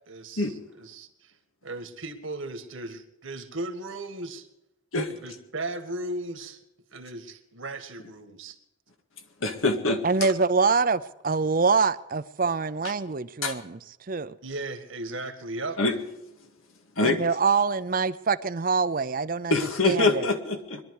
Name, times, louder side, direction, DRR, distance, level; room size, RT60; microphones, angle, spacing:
voice 1, 0.0-1.3 1.6-4.5 5.2-6.6 6.9-8.6 14.4-15.8, right 2 dB, 75° right, 1.8 m, -36 dB
voice 2, 9.4-10.3 13.4-13.6 15.8-15.9 17.0-17.2 19.5-20.8, left 2 dB, 85° left, 2.0 m, -24 dB
voice 3, 10.0-13.8 14.1-14.4 17.0-19.6 19.8-20.2, right 4 dB, 45° right, 0.6 m, -25 dB
22.5 x 12.0 x 4.8 m
head